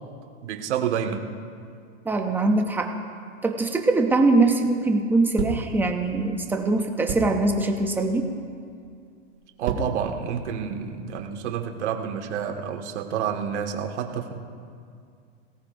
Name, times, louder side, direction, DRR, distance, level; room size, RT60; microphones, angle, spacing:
voice 1, 0.4-1.2 9.6-14.3, right 8 dB, 65° right, 3 dB, 1.8 m, -29 dB
voice 2, 2.1-2.9 3.4-8.3, right 2 dB, 5° right, 3 dB, 0.5 m, -22 dB
sound 1, 5.4-5.8 7.1-7.4 8.2-8.5 9.3-10.1 10.7-11.6, right 4 dB, 40° right, 2.4 m, -32 dB
26.0 x 17.5 x 2.6 m, 2.3 s
hypercardioid pair, 150°, 37 cm